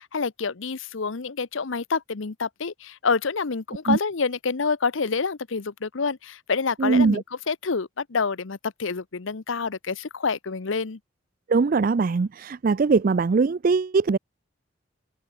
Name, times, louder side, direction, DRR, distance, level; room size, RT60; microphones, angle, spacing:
voice 1, 0.0-11.0, left 5 dB, 80° left, 0.8 m, -27 dB
voice 2, 6.8-7.2 11.5-14.2, right 4 dB, 45° right, 0.4 m, -21 dB
open air
head